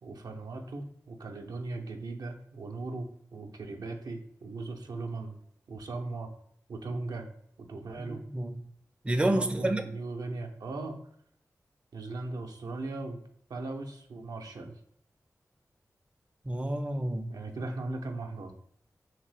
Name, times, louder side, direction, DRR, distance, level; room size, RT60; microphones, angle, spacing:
voice 1, 0.0-5.4 5.7-6.3 6.7-7.3 7.6-8.2 9.2-11.0 11.9-13.2 13.5-14.7 17.3-18.5, right 3 dB, 80° right, 3 dB, 0.5 m, -38 dB
voice 2, 8.1-8.7 9.0-9.8 16.4-17.4, right 1 dB, 15° right, 6 dB, 0.4 m, -29 dB
2.8 x 2.7 x 3.2 m, 0.69 s
cardioid pair, 50°, 7 cm